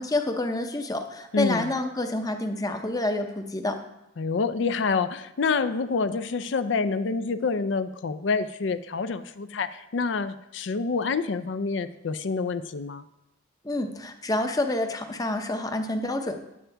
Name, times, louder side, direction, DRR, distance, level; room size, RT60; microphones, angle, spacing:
voice 1, 0.0-3.8 13.6-16.4, left 2 dB, 20° left, 6 dB, 0.7 m, -28 dB
voice 2, 1.3-1.7 4.2-13.0, left 4 dB, 70° left, 12 dB, 0.5 m, -27 dB
9.9 x 8.6 x 3.4 m, 0.88 s
head